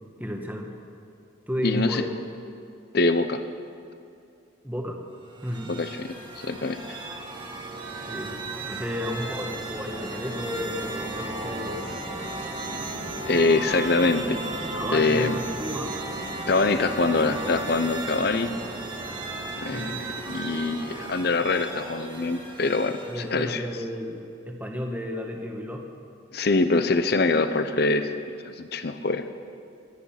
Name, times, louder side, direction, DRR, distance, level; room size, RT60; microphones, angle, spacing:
voice 1, 0.2-0.7 1.5-2.1 4.6-5.0 5.4-5.7 8.0-11.8 14.7-16.0 19.7-20.0 23.1-25.8, equal, 10° right, 2 dB, 1.3 m, -32 dB
voice 2, 1.6-2.0 2.9-3.4 5.7-6.1 6.4-6.8 13.3-14.4 14.9-15.4 16.5-18.5 19.6-23.6 26.3-28.1 28.5-29.3, left 3 dB, 55° left, 10 dB, 0.8 m, -24 dB
sound 1, 5.2-23.4, right 2 dB, 25° right, 1.6 m, -35 dB
22.5 x 9.7 x 5.8 m, 2.5 s
head